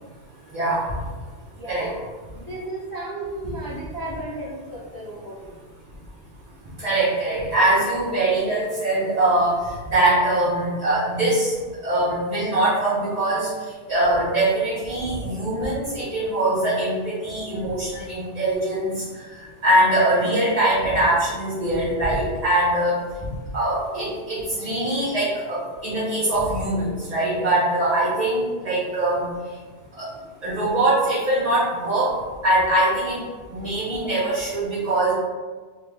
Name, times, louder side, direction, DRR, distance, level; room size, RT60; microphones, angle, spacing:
voice 1, 0.5-0.8 1.7-1.9 6.8-9.6 9.9-11.5 11.8-13.5 13.9-18.9 19.6-23.0 23.5-29.2 30.0-30.1 30.4-32.1 32.4-33.2 33.5-35.1, right 1 dB, 40° right, -11 dB, 0.9 m, -22 dB
voice 2, 1.5-2.0 2.3-5.5 24.0-24.1, right 1 dB, 30° left, -8 dB, 0.4 m, -34 dB
3.3 x 2.2 x 3.3 m, 1.5 s
omnidirectional pair, 1.2 m